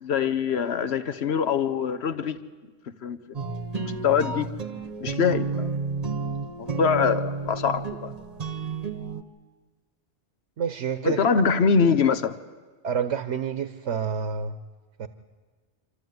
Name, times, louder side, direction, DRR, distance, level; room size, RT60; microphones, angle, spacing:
voice 1, 0.0-2.4 3.0-3.2 3.7-4.5 5.0-5.7 6.6-8.1 11.0-12.4, left 6 dB, 65° left, 12 dB, 1.2 m, -24 dB
sound 1, 3.3-9.2, right 4 dB, 35° right, 1.1 m, -31 dB
voice 2, 10.6-11.3 12.8-14.6 15.0-15.1, right 7 dB, 75° right, 11 dB, 1.2 m, -28 dB
26.5 x 13.0 x 9.4 m, 1.4 s
omnidirectional pair, 1.2 m